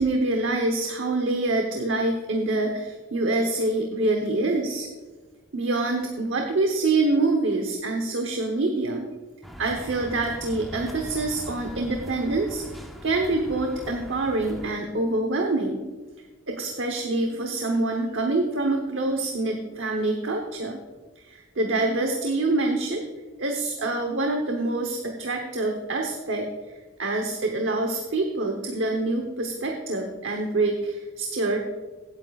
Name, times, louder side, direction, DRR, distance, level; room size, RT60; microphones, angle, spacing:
voice 1, 0.0-4.9 5.5-9.1 9.6-12.6 13.0-15.8 16.5-20.8 21.2-23.0 23.4-31.6, right 2 dB, 70° right, 2 dB, 1.0 m, -26 dB
sound 1, 9.4-14.7, equal, ahead, 0.9 m, -41 dB
16.0 x 8.9 x 2.4 m, 1.3 s
head